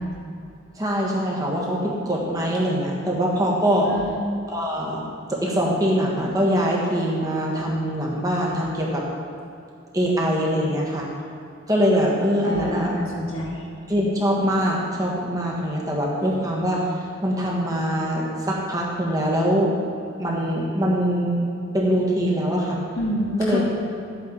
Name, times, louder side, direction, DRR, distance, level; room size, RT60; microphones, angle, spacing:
voice 1, 0.8-3.9 4.5-5.0 5.3-9.0 9.9-11.1 11.7-12.9 13.9-16.9 17.2-19.7 20.2-21.5 21.7-22.8 23.4-23.7, equal, 15° right, -3 dB, 1.5 m, -23 dB
voice 2, 12.4-13.6 22.9-23.7, left 1 dB, 80° left, -4 dB, 1.6 m, -27 dB
12.5 x 8.7 x 4.0 m, 2.6 s
head